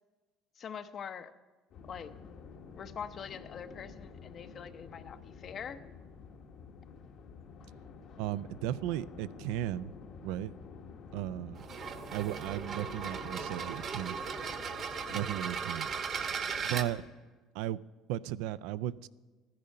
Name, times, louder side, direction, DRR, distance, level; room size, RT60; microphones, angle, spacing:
voice 1, 0.6-1.3 1.9-2.1 2.8-5.8, left 7 dB, 45° left, 10 dB, 0.7 m, -43 dB
sound 1, 1.7-17.1, left 5 dB, 60° left, 1.4 m, -50 dB
voice 2, 8.2-9.9 10.2-10.5 11.1-11.7 12.1-14.2 15.1-15.9 16.6-17.1 17.5-17.8 18.1-19.1, right 13 dB, 80° right, 16 dB, 0.3 m, -35 dB
sound 2, 11.6-16.9, right 6 dB, 45° right, 1.0 m, -37 dB
14.0 x 10.5 x 5.4 m, 1.3 s
supercardioid pair, 105°, 0 cm